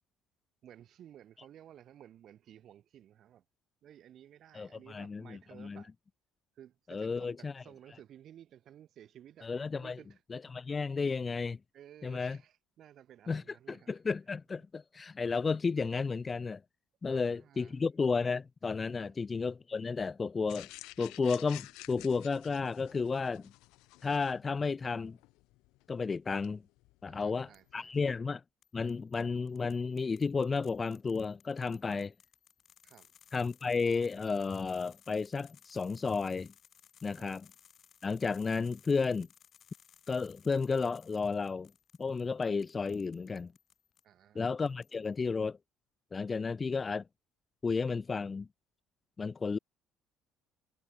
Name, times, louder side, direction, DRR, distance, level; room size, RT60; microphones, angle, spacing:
voice 1, 0.6-3.4 3.8-5.9 6.6-10.5 11.7-14.0 17.1-17.8 19.0-19.2 27.1-28.1 32.8-33.1 37.1-37.3 44.0-44.5 46.3-46.5, right 11 dB, 50° right, 6.4 m, -56 dB
voice 2, 4.5-5.8 6.9-7.5 9.4-10.0 10.3-11.6 12.0-12.4 13.3-13.4 13.7-16.6 17.0-20.7 21.0-23.5 24.0-25.2 25.9-26.6 27.0-28.4 28.7-32.1 33.3-36.5 37.0-37.4 38.0-39.3 40.1-41.7 42.0-43.5 44.4-45.6 46.1-47.0 47.6-48.5 49.2-49.6, left 4 dB, 20° left, 0.5 m, -32 dB
sound 1, 20.5-28.1, left 21 dB, 80° left, 7.1 m, -53 dB
sound 2, 27.5-27.9 28.6-44.0 44.5-45.2, left 9 dB, 45° left, 5.3 m, -62 dB
cardioid pair, 130°, 0 cm